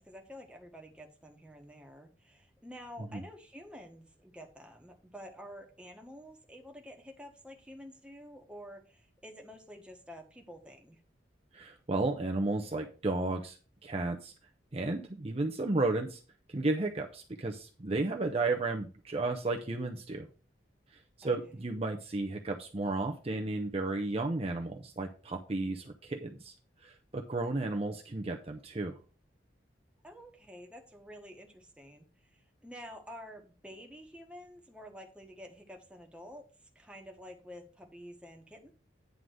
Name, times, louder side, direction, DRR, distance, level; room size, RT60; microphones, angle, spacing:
voice 1, 0.0-11.0 21.2-21.4 30.0-32.0 32.3-38.7, equal, 5° right, 2 dB, 1.3 m, -49 dB
voice 2, 11.5-13.6 13.8-14.3 14.7-16.2 16.5-20.3 21.2-26.5 26.8-29.0, right 2 dB, 35° right, 3 dB, 0.7 m, -33 dB
9.4 x 3.8 x 6.3 m, 0.37 s
head